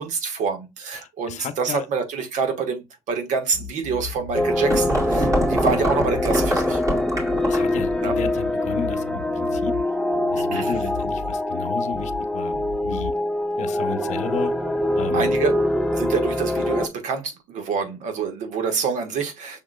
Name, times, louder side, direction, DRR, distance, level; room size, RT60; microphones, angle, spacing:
voice 1, 0.0-6.8 8.0-8.1 10.5-10.8 15.1-15.5 15.9-19.6, right 5 dB, 80° right, 1.3 m, -27 dB
voice 2, 1.0-1.9 7.5-9.7 10.3-12.6 12.8-13.1 13.6-14.5 15.0-15.3, left 6 dB, 70° left, 0.7 m, -33 dB
sound 1, 3.5-5.0 5.3-6.6 7.1-7.4 7.7-9.8 10.1-11.4 11.9-12.2 12.5-13.1, left 4 dB, 65° right, 2.4 m, -37 dB
sound 2, 4.3-16.9, left 1 dB, 5° left, 0.6 m, -24 dB
sound 3, 4.3-7.8, right 1 dB, 25° right, 2.1 m, -24 dB
5.8 x 3.7 x 2.2 m
cardioid pair, 100°, 13 cm